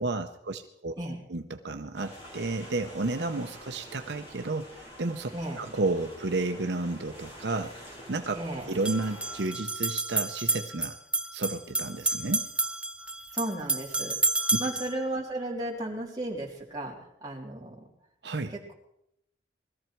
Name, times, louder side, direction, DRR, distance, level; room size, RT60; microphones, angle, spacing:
voice 1, 0.0-0.9 1.3-8.4 8.7-11.0 11.3-12.5 18.2-18.5, right 2 dB, 70° right, 6 dB, 0.8 m, -32 dB
sound 1, 1.9-9.5, equal, 30° left, 5.0 m, -47 dB
sound 2, 7.1-7.2 8.7-14.9, right 3 dB, 5° right, 0.5 m, -30 dB
voice 2, 8.3-8.7 13.3-14.2 14.6-17.9 18.5-18.7, right 1 dB, 20° right, -3 dB, 3.5 m, -34 dB
21.0 x 14.0 x 4.6 m, 0.77 s
head